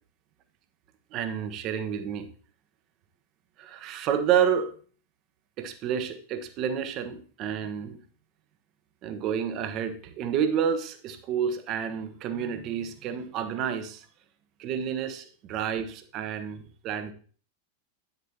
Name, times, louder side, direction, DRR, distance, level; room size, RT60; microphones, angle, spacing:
voice 1, 1.1-2.3 3.6-4.7 5.6-8.0 9.0-14.1 14.6-17.1, right 8 dB, 35° right, 10 dB, 0.9 m, -29 dB
9.6 x 6.9 x 2.9 m, 0.42 s
figure-of-eight pair, 90°, 0 cm